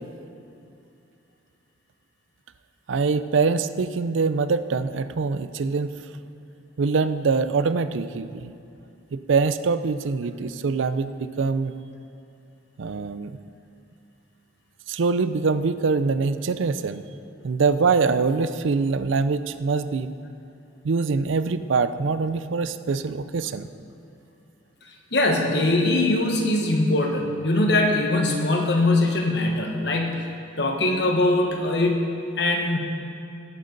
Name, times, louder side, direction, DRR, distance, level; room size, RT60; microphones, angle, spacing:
voice 1, 2.9-5.9 6.8-8.5 9.1-11.7 12.8-13.4 14.9-17.0 17.4-20.1 20.8-23.7, right 4 dB, 80° right, 12 dB, 0.5 m, -24 dB
voice 2, 25.1-30.3 30.6-32.8, left 2 dB, 60° left, 2 dB, 1.3 m, -22 dB
17.5 x 9.1 x 4.0 m, 2.6 s
head